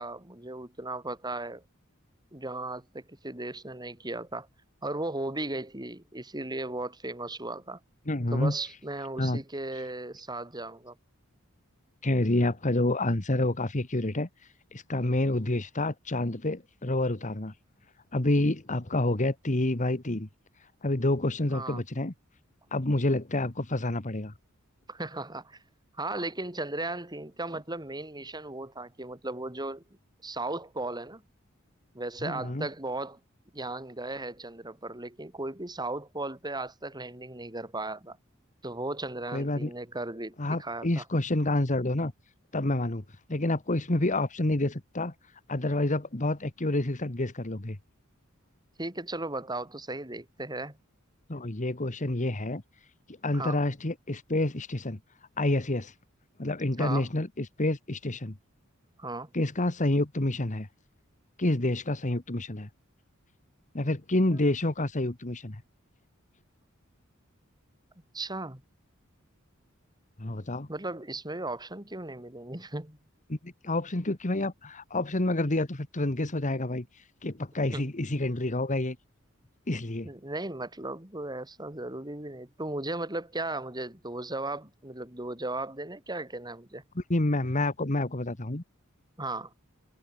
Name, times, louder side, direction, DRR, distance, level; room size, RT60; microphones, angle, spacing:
voice 1, 0.0-1.6 2.3-4.5 4.8-7.8 8.3-10.9 21.5-21.8 24.9-25.6 26.0-29.8 30.2-31.2 31.9-33.2 33.5-38.2 38.6-41.0 48.8-50.8 53.3-53.6 56.8-57.1 59.0-59.3 68.1-68.6 70.7-73.0 77.7-77.8 80.0-86.8 89.2-89.5, right 2 dB, 20° right, 5.0 m, -36 dB
voice 2, 8.1-8.5 9.2-9.4 12.0-14.3 14.7-17.5 18.1-20.3 20.8-22.1 22.7-24.3 32.2-32.7 39.3-39.7 40.4-42.1 42.5-43.0 43.3-45.1 45.5-47.8 51.3-52.6 53.1-55.0 55.4-55.9 56.4-58.4 59.3-60.7 61.4-62.7 63.7-65.6 70.2-70.7 73.3-76.8 77.2-79.0 79.7-80.1 86.9-88.6, left 1 dB, 35° left, 1.6 m, -28 dB
head